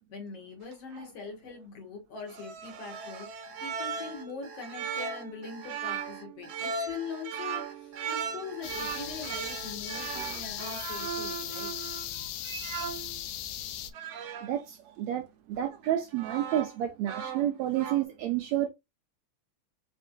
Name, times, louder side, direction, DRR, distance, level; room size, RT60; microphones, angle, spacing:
voice 1, 0.1-11.7, left 5 dB, 55° left, 2.3 m, -42 dB
sound 1, 0.7-1.1 2.3-13.2 13.9-14.5 15.6-16.8 17.1-18.0, right 6 dB, 75° right, 1.4 m, -38 dB
Alarm, 2.9-10.7, right 4 dB, 50° right, 1.0 m, -49 dB
sound 2, 8.6-13.9, left 11 dB, 80° left, 2.1 m, -38 dB
voice 2, 14.4-18.7, right 12 dB, 90° right, 1.6 m, -30 dB
5.4 x 3.4 x 2.5 m
omnidirectional pair, 3.7 m